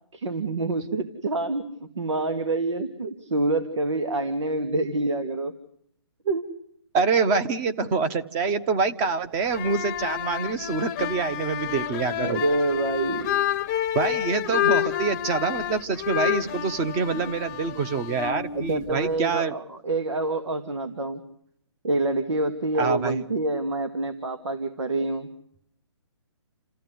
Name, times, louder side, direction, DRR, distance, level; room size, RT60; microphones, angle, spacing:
voice 1, 0.1-5.5 6.2-6.5 12.2-13.5 17.1-17.3 18.5-21.2 21.8-25.3, right 2 dB, 80° right, 10 dB, 2.2 m, -27 dB
voice 2, 6.9-12.4 13.9-19.5 22.8-23.2, right 4 dB, 20° right, 10 dB, 1.2 m, -26 dB
sound 1, 9.4-19.2, left 11 dB, 20° left, 0.9 m, -29 dB
29.0 x 15.0 x 9.5 m, 0.70 s
hypercardioid pair, 160°, 15 cm